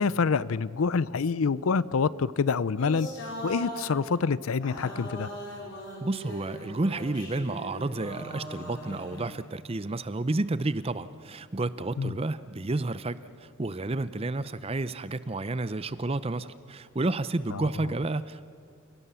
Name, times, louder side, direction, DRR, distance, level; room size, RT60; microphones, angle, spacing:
voice 1, 0.0-3.1 3.4-5.3 12.0-12.1 17.5-17.7, left 5 dB, 80° left, 19 dB, 0.5 m, -26 dB
sound 1, 2.8-4.0 4.6-9.5, left 1 dB, 55° left, 5.0 m, -40 dB
voice 2, 6.0-18.4, right 2 dB, 25° right, 15 dB, 0.6 m, -31 dB
29.0 x 17.0 x 6.9 m, 2.2 s
head